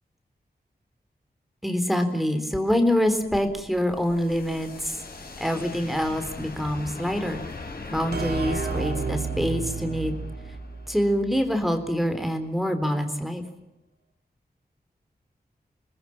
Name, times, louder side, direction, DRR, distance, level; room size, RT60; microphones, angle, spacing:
voice 1, 1.6-5.0 5.4-7.4 7.9-10.2 10.9-13.4, equal, ahead, 6 dB, 3.8 m, -25 dB
sound 1, 2.6-11.6, left 3 dB, 65° left, 5.3 m, -41 dB
sound 2, 8.1-11.7, right 5 dB, 75° right, 3.2 m, -32 dB
27.5 x 20.5 x 7.3 m, 0.89 s
wide cardioid pair, 105°, 17 cm